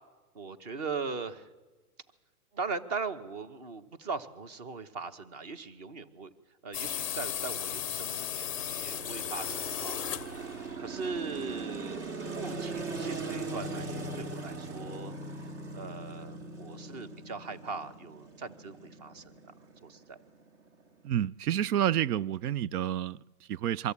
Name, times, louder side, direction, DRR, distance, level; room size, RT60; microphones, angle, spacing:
voice 1, 0.3-1.5 2.5-6.3 6.6-10.0 10.8-12.0 12.3-15.1 15.7-19.2 19.9-20.2, right 4 dB, 30° right, 0.9 m, -39 dB
sound 1, 6.7-10.7, left 11 dB, 25° left, 0.5 m, -35 dB
sound 2, 6.8-21.1, right 3 dB, 50° right, 2.0 m, -41 dB
voice 2, 21.0-23.9, right 11 dB, 80° right, 0.5 m, -29 dB
23.0 x 13.5 x 8.5 m
hypercardioid pair, 165°, 45 cm